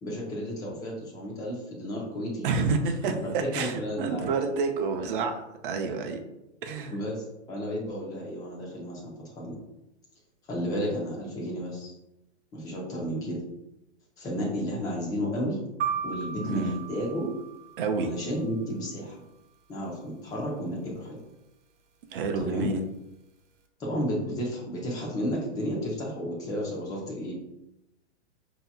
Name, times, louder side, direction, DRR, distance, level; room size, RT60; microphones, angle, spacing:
voice 1, 0.0-2.5 3.0-4.4 6.9-9.6 10.5-11.9 12.5-13.4 14.2-15.6 16.0-17.3 18.0-19.2 19.7-21.2 22.4-22.7 23.8-27.3, equal, 10° left, -4 dB, 0.5 m, -32 dB
voice 2, 2.4-6.2 6.6-6.9 16.4-16.8 17.8-18.1 22.1-22.8, right 4 dB, 50° right, 5 dB, 0.6 m, -29 dB
sound 1, 15.8-17.9, right 7 dB, 80° right, 0.8 m, -34 dB
5.5 x 2.8 x 2.3 m, 0.92 s
hypercardioid pair, 155°, 35 cm